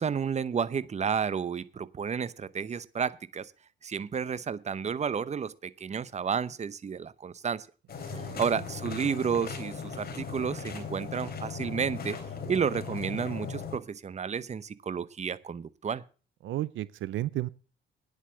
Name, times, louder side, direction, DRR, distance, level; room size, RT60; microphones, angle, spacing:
voice 1, 0.0-3.5 3.8-7.7 8.1-12.2 12.5-16.0, right 6 dB, 35° right, 17 dB, 0.8 m, -31 dB
sound 1, 7.9-13.8, left 5 dB, 50° left, 3.3 m, -38 dB
voice 2, 8.1-8.5 16.4-17.5, right 15 dB, 75° right, 19 dB, 0.6 m, -33 dB
10.0 x 8.5 x 7.4 m, 0.36 s
cardioid pair, 90°, 20 cm